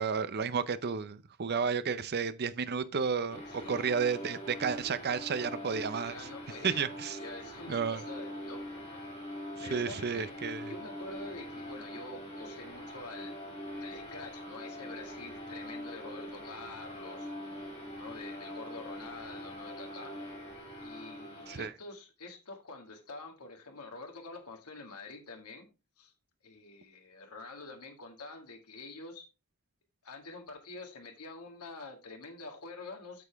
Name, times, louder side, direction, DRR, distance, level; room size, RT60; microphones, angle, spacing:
voice 1, 0.0-6.3 6.6-7.2 7.7-8.0 9.6-10.7 21.5-21.7, right 6 dB, 45° right, 0.6 m, -32 dB
sound 1, 3.3-21.7, equal, 30° left, 4.0 m, -43 dB
voice 2, 3.5-4.0 6.0-6.9 7.2-9.0 9.6-10.4 10.7-13.4 13.8-17.3 17.9-20.2 20.8-25.7 26.0-26.1 26.4-29.3 30.0-33.2, left 3 dB, 85° left, 2.1 m, -47 dB
8.4 x 7.1 x 3.4 m
head